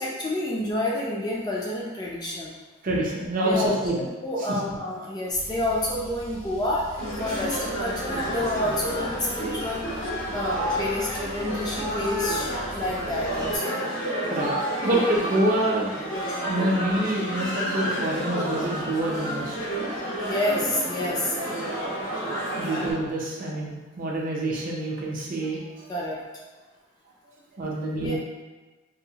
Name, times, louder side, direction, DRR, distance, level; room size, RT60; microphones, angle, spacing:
voice 1, 0.0-2.5 3.4-3.7 4.0-9.9 10.3-13.8 20.2-21.4 25.9-26.2 28.0-28.2, left 1 dB, 20° left, -4 dB, 0.3 m, -29 dB
voice 2, 2.8-4.0 14.1-14.5 14.8-16.1 16.5-19.6 20.1-20.2 22.6-25.6 27.5-28.2, right 1 dB, 45° right, -3 dB, 0.5 m, -26 dB
Car, 5.3-13.6, left 1 dB, 55° left, 0.8 m, -42 dB
sound 1, 7.0-22.9, right 1 dB, 85° left, 1.0 m, -30 dB
2.8 x 2.1 x 2.6 m, 1.3 s
head